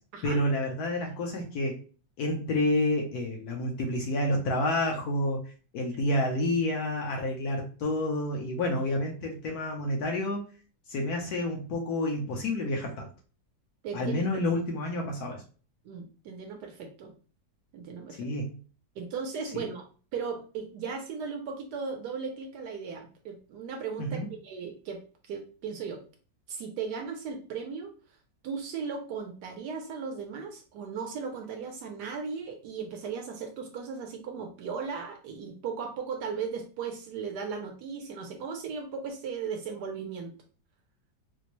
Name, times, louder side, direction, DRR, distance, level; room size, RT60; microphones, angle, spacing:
voice 1, 0.2-1.8 2.2-5.4 5.7-10.4 10.9-13.1 13.9-15.4 18.2-18.6 19.5-19.6 24.0-24.3, left 1 dB, 65° left, 1 dB, 1.0 m, -29 dB
voice 2, 13.8-14.2 15.8-17.1 17.7-18.2 19.0-19.9 20.1-26.0 26.5-27.9 28.4-40.3, right 5 dB, 70° right, 3 dB, 1.1 m, -37 dB
4.3 x 2.0 x 2.8 m, 0.39 s
omnidirectional pair, 2.0 m